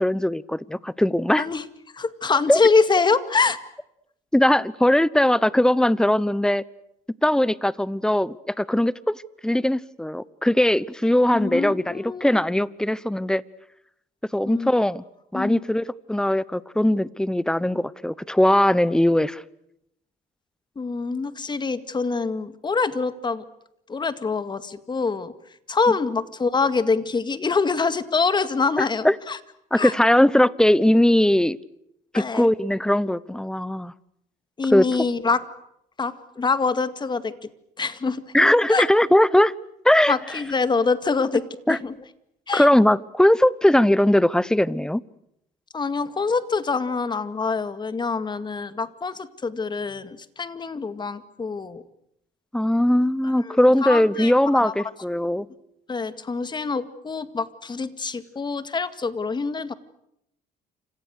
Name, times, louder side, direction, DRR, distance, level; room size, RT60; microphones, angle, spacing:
voice 1, 0.0-1.4 2.5-2.6 4.3-6.6 7.2-13.4 14.3-15.0 15.3-19.4 28.8-29.2 29.7-31.6 32.1-33.9 34.7-34.8 38.3-39.5 39.8-40.1 41.7-41.8 42.5-45.0 52.5-55.5, left 1 dB, 5° left, 20 dB, 0.9 m, -20 dB
voice 2, 1.9-3.6 11.3-12.4 14.5-14.7 15.3-15.7 20.8-23.4 23.9-25.3 25.7-29.4 29.8-29.9 32.1-32.5 34.6-35.4 36.0-37.3 37.8-38.2 38.7-38.8 40.1-41.4 41.7-41.9 42.5-42.7 45.7-51.8 53.4-54.3 54.6-54.7 55.4-55.5 55.9-59.7, left 4 dB, 25° left, 12 dB, 2.1 m, -25 dB
29.5 x 26.5 x 6.6 m, 0.78 s
cardioid pair, 110°, 17 cm